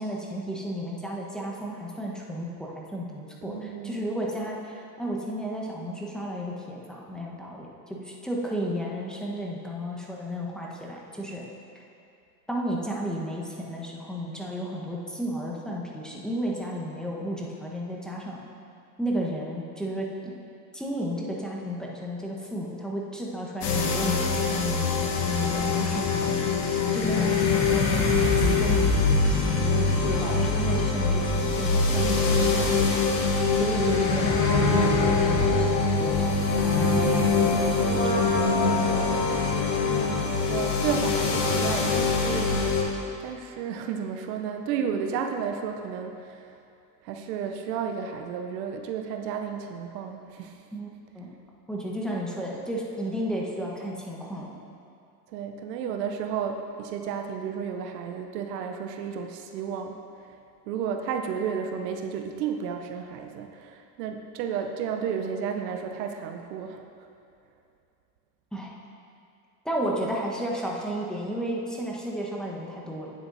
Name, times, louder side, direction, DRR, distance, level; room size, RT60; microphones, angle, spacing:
voice 1, 0.0-11.4 12.5-18.4 19.0-20.3 20.7-38.4 50.7-50.9 51.1-51.3 51.7-54.6 68.5-68.7 69.6-73.1, equal, ahead, -4 dB, 1.1 m, -33 dB
voice 2, 3.4-4.1 38.0-38.7 39.8-42.6 43.2-46.5 47.0-50.6 55.3-60.0 60.7-66.8, right 7 dB, 75° right, 5 dB, 0.7 m, -32 dB
sound 1, 23.6-42.8, left 4 dB, 80° left, 1.2 m, -24 dB
Brass instrument, 34.0-40.9 41.2-41.3, equal, 45° left, 1.9 m, -30 dB
9.3 x 7.6 x 2.7 m, 2.5 s
hypercardioid pair, 85°, 50 cm